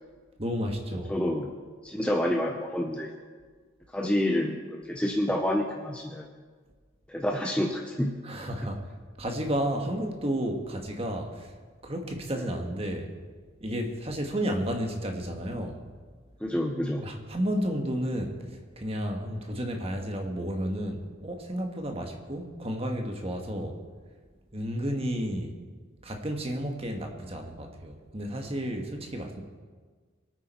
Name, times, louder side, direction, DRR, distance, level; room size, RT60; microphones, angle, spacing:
voice 1, 0.4-1.1 8.2-8.8 9.2-11.5 11.8-13.1 13.6-15.8 17.0-18.4 18.8-23.8 24.5-25.6 26.0-29.4, equal, 30° right, 3 dB, 1.6 m, -32 dB
voice 2, 1.1-1.5 1.8-3.1 3.9-6.2 7.1-8.1 12.4-12.5 16.4-17.1, left 1 dB, 5° left, 1 dB, 0.7 m, -28 dB
22.5 x 9.4 x 4.4 m, 1.5 s
head